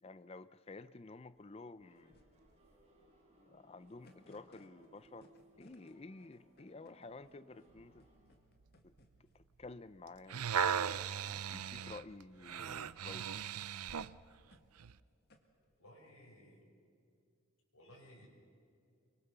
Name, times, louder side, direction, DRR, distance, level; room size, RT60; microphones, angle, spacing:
voice 1, 0.0-2.2 3.4-5.3 5.6-8.0 8.8-8.9 9.2-10.5 11.5-13.4, left 3 dB, 25° left, 14 dB, 0.5 m, -52 dB
sound 1, 1.4-16.1, left 1 dB, 45° left, 1.9 m, -67 dB
sound 2, 1.8-8.3, right 1 dB, 30° right, 5.7 m, -67 dB
sound 3, 10.1-14.2 14.8-14.9, right 8 dB, 85° right, 0.6 m, -37 dB
voice 2, 15.8-16.7 17.7-18.3, equal, 85° left, -1 dB, 6.6 m, -59 dB
23.5 x 23.5 x 6.8 m, 2.3 s
head